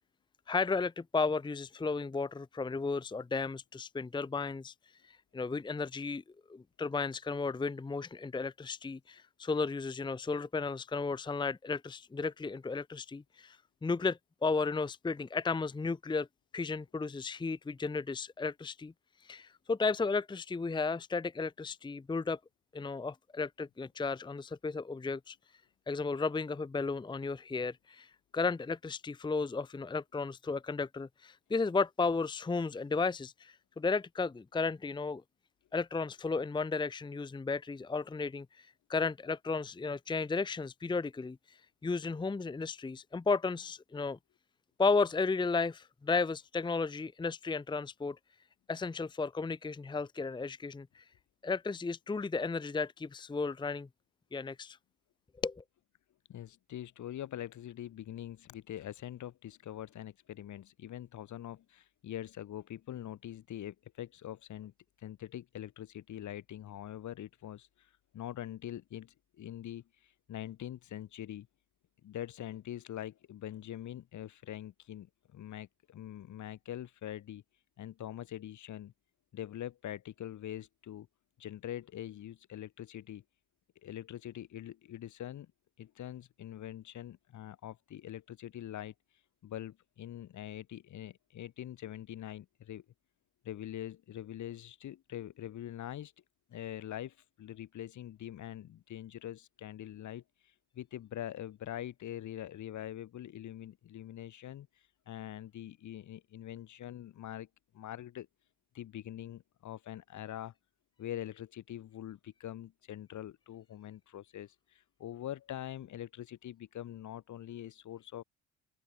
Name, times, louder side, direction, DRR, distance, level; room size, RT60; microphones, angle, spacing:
voice 1, 0.5-4.7 5.0-6.2 6.5-13.6 13.8-16.3 16.5-18.9 19.2-22.4 22.7-25.4 25.9-35.2 35.7-41.6 41.8-44.2 44.8-48.2 48.7-51.0 51.4-53.9 54.3-54.8 55.4-55.6, left 4 dB, 15° left, 0.7 m, -34 dB
voice 2, 56.3-64.7 65.0-71.5 72.0-77.4 77.8-78.9 79.3-81.1 81.4-83.2 83.8-85.5 85.8-88.9 89.4-92.8 93.4-96.1 96.5-104.7 105.1-107.5 107.7-108.3 108.7-110.5 111.0-118.2, left 11 dB, 70° left, 4.9 m, -44 dB
open air
cardioid pair, 90°, 30 cm